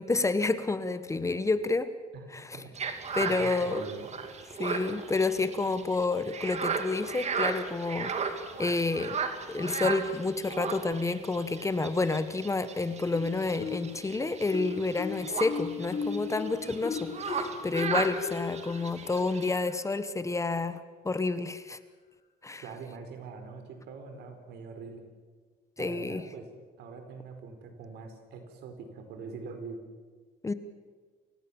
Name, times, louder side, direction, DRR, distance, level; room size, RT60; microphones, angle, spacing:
voice 1, 0.0-1.9 2.3-2.6 3.1-3.8 4.6-8.1 8.6-9.2 9.5-21.8 22.4-22.6 25.8-26.2 30.4-30.5, left 3 dB, 15° left, 12 dB, 1.2 m, -29 dB
voice 2, 2.1-2.9 3.2-4.1 22.6-25.0 25.8-26.5 26.8-29.8, right 4 dB, 75° right, 6 dB, 4.6 m, -43 dB
sound 1, 2.7-19.5, right 5 dB, 40° right, 2.6 m, -36 dB
Marimba xylophone, 13.1-14.0 14.5-20.0, left 6 dB, 55° left, 3.6 m, -37 dB
29.0 x 16.0 x 7.2 m, 1.5 s
cardioid pair, 110°, 17 cm